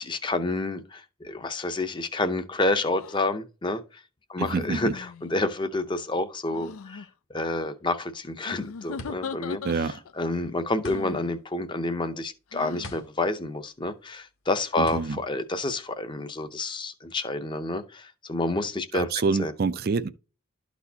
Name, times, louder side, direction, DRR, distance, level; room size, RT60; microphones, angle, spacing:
voice 1, 0.0-4.0 4.3-19.1 19.4-19.5, left 2 dB, 20° left, 0.6 m, -29 dB
sound 1, 2.9-3.2 4.5-5.4 6.5-7.1 8.4-10.2 10.9-11.3 12.5-13.0, left 5 dB, 80° left, 0.4 m, -39 dB
voice 2, 4.4-4.9 9.6-9.9 14.8-15.2 18.9-20.1, right 4 dB, 45° right, 0.4 m, -26 dB
sound 2, 8.3-16.5, left 1 dB, 60° left, 1.4 m, -45 dB
12.0 x 4.2 x 2.8 m
head